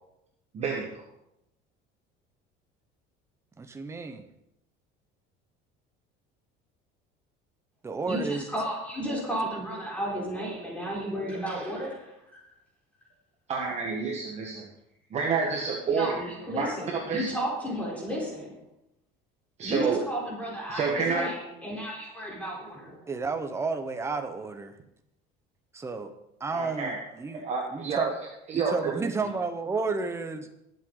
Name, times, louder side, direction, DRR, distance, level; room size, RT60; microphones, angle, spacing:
voice 1, 0.5-0.9 13.5-14.7 15.1-17.3 19.6-20.0 20.7-21.3 26.5-27.0 27.3-28.1 28.5-28.9, right 5 dB, 35° right, -1 dB, 1.5 m, -29 dB
voice 2, 3.6-4.2 7.8-8.4 23.1-24.8 25.7-26.1 26.4-27.4 27.7-28.1 28.5-30.5, right 4 dB, 15° right, 7 dB, 1.0 m, -32 dB
voice 3, 8.1-12.4 15.9-18.6 19.6-23.1, equal, 5° left, -4 dB, 4.1 m, -33 dB
21.0 x 7.9 x 4.0 m, 0.84 s
cardioid pair, 170°, 20 cm